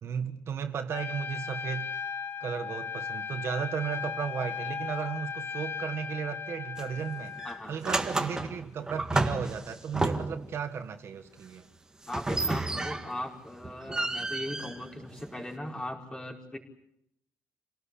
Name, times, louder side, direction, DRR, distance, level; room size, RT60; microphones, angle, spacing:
voice 1, 0.0-1.9 2.4-7.3 7.7-11.6, right 7 dB, 50° right, 7 dB, 1.7 m, -35 dB
Trumpet, 0.9-7.6, left 6 dB, 45° left, 1.6 m, -37 dB
sound 1, 6.8-7.0 7.4-10.5 12.1-13.3 13.6-15.5, right 2 dB, 10° right, 1.7 m, -31 dB
voice 2, 7.4-7.7 8.3-8.4 12.1-16.6, left 1 dB, 15° left, 1 dB, 4.9 m, -39 dB
29.0 x 18.5 x 8.6 m, 0.73 s
cardioid pair, 160°, 6 cm